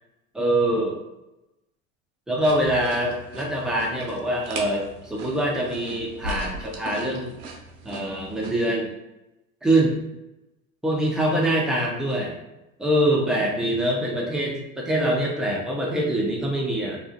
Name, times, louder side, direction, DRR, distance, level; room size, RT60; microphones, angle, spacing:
voice 1, 0.3-1.0 2.3-7.4 7.8-9.0 9.6-10.0 10.8-12.3 12.8-17.0, right 1 dB, ahead, -2 dB, 0.4 m, -24 dB
sound 1, 2.4-8.5, right 2 dB, 85° right, 0.6 m, -38 dB
2.4 x 2.3 x 2.5 m, 0.93 s
hypercardioid pair, 90°, 42 cm